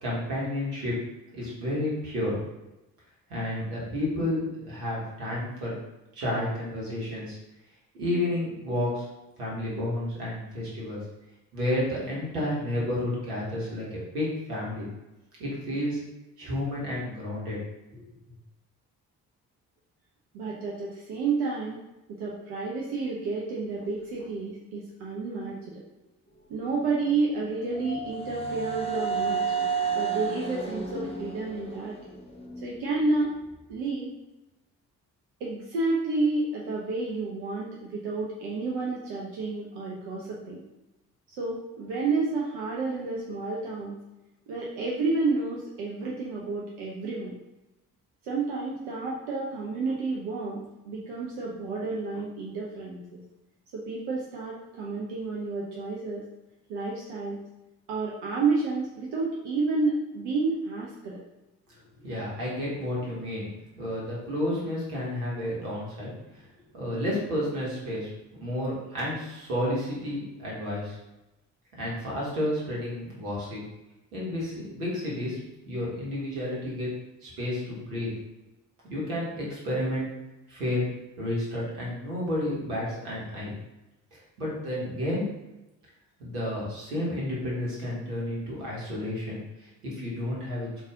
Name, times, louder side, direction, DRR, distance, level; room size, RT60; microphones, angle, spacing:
voice 1, 0.0-1.0 1.3-2.4 3.3-5.7 6.1-7.4 7.9-9.0 9.4-11.0 11.5-14.9 15.4-16.0 16.4-17.6 17.9-18.0 62.0-63.5 63.8-66.1 66.7-68.1 68.4-71.0 71.8-73.6 74.1-75.4 75.7-76.9 77.2-78.1 78.9-80.1 80.5-80.9 81.2-83.5 84.4-85.3 86.2-90.7, left 1 dB, 75° right, -6 dB, 1.2 m, -31 dB
voice 2, 20.3-21.8 22.1-25.8 26.5-29.6 29.9-32.0 32.6-33.3 33.7-34.1 35.4-40.6 41.3-44.0 44.5-47.3 48.2-53.2 53.7-56.2 56.7-57.4 57.9-61.2, right 3 dB, 60° right, -4 dB, 0.8 m, -30 dB
sound 1, 26.9-32.8, right 5 dB, 15° left, 0.5 m, -31 dB
4.0 x 2.5 x 3.6 m, 0.97 s
figure-of-eight pair, 40°, 46 cm